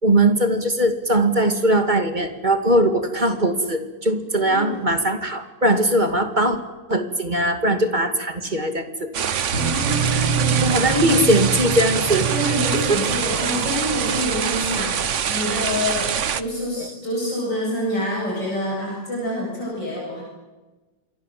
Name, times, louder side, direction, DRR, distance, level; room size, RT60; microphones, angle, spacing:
voice 1, 0.0-6.6 6.9-9.1 10.1-10.3 10.6-12.5 12.9-13.0 16.8-16.9, right 1 dB, 25° right, 7 dB, 2.5 m, -20 dB
voice 2, 4.4-4.8 9.5-11.5 12.2-20.2, equal, 75° left, -3 dB, 8.5 m, -27 dB
sound 1, 9.1-16.4, right 8 dB, 50° right, 1.1 m, -24 dB
sound 2, 9.5-14.3, right 6 dB, 70° right, 2.6 m, -27 dB
28.0 x 22.5 x 7.7 m, 1.2 s
omnidirectional pair, 1.9 m